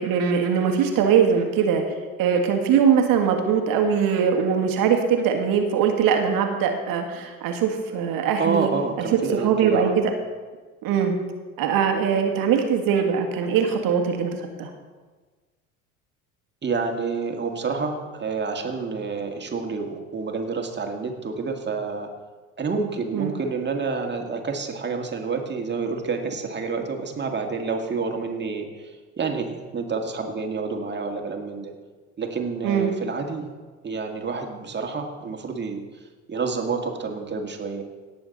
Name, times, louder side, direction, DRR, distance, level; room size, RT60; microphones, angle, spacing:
voice 1, 0.0-1.8 2.2-8.7 9.0-9.1 9.3-9.9 10.8-11.1 11.6-14.7 23.1-23.3 32.6-32.9, right 7 dB, 55° right, 4 dB, 1.8 m, -21 dB
voice 2, 8.4-10.0 16.6-22.1 22.6-31.7 32.2-33.5 33.8-35.8 36.3-37.8, right 4 dB, 25° right, 3 dB, 1.9 m, -28 dB
17.5 x 7.0 x 4.1 m, 1.4 s
hypercardioid pair, 65°, 41 cm